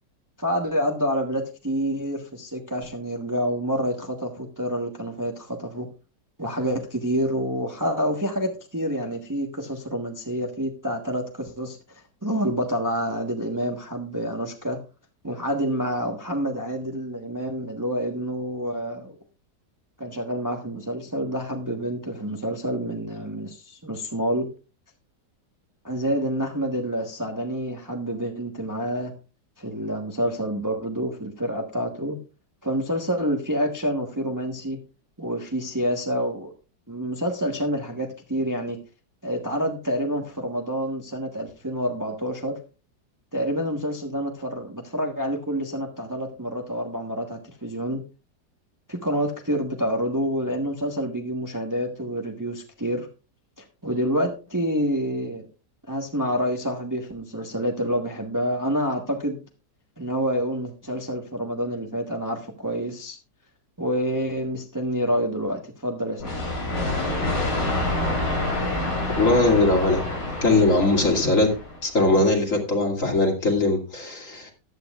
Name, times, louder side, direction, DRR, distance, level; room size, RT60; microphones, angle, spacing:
voice 1, 0.4-5.9 6.4-14.8 15.2-19.2 20.0-24.5 25.8-29.1 29.6-32.2 32.6-34.8 35.2-36.5 36.9-38.8 39.2-42.6 43.3-48.0 48.9-53.1 53.6-55.5 55.9-59.4 60.0-63.2 63.8-66.3, equal, 10° right, 3 dB, 1.1 m, -28 dB
sound 1, 66.2-71.9, left 1 dB, 85° left, 4.5 m, -27 dB
voice 2, 69.2-70.0 70.4-71.5 71.8-74.5, left 2 dB, 45° left, 1 dB, 2.8 m, -20 dB
14.5 x 11.5 x 2.4 m, 0.32 s
omnidirectional pair, 1.9 m